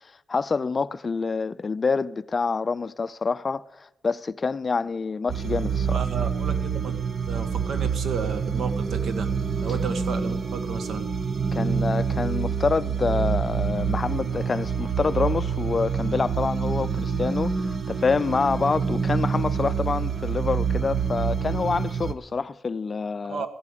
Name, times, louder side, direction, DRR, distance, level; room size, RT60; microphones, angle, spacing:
voice 1, 0.0-6.0 11.5-23.4, left 4 dB, 30° left, 0.4 m, -27 dB
sound 1, 5.3-22.1, right 6 dB, 40° right, 0.9 m, -27 dB
voice 2, 5.9-7.0 7.3-9.3 9.6-11.1 23.2-23.5, right 5 dB, 60° right, 1.5 m, -33 dB
15.0 x 8.5 x 8.5 m
cardioid pair, 125°, 0 cm